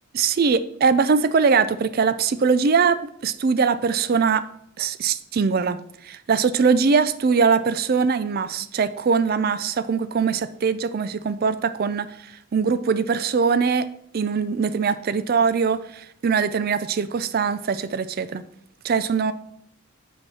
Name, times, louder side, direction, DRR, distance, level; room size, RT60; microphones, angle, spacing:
voice 1, 0.1-4.5 4.8-5.8 6.0-12.1 12.5-13.9 14.1-18.4 18.8-19.3, right 5 dB, 45° right, 0.4 m, -21 dB
7.6 x 5.3 x 5.6 m
head